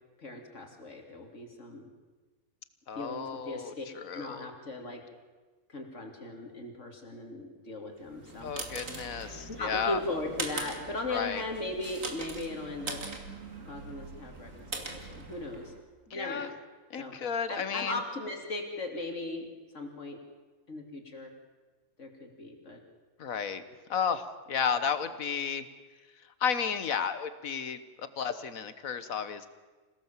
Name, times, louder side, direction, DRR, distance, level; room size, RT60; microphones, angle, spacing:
voice 1, 0.2-1.8 2.9-3.8 4.1-5.0 5.7-8.9 9.5-13.0 13.6-15.7 16.1-16.5 17.0-17.2 17.5-19.5 19.7-20.2 20.7-21.3 22.0-22.8, left 2 dB, 60° left, 2 dB, 3.2 m, -38 dB
voice 2, 2.9-4.5 8.4-10.0 11.1-11.4 16.1-16.5 16.9-18.0 23.2-23.6 23.9-25.7 26.4-29.5, left 7 dB, 80° left, 12 dB, 1.6 m, -33 dB
sound 1, 8.1-15.8, right 3 dB, 70° right, 2.7 m, -41 dB
27.0 x 17.0 x 7.4 m, 1.3 s
omnidirectional pair, 1.4 m